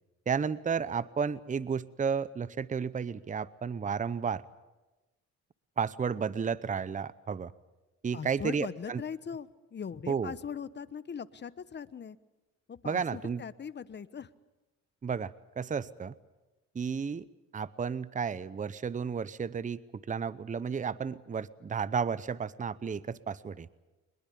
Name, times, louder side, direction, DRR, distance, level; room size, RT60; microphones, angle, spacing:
voice 1, 0.3-4.4 5.8-7.5 8.0-9.0 10.1-10.3 12.8-13.4 15.0-16.1 16.7-17.2 17.5-19.8 20.1-23.7, right 6 dB, 25° right, 18 dB, 0.7 m, -32 dB
voice 2, 8.1-12.2 12.7-14.3, left 7 dB, 35° left, 15 dB, 1.0 m, -40 dB
23.0 x 21.5 x 8.5 m, 1.1 s
cardioid pair, 90°, 30 cm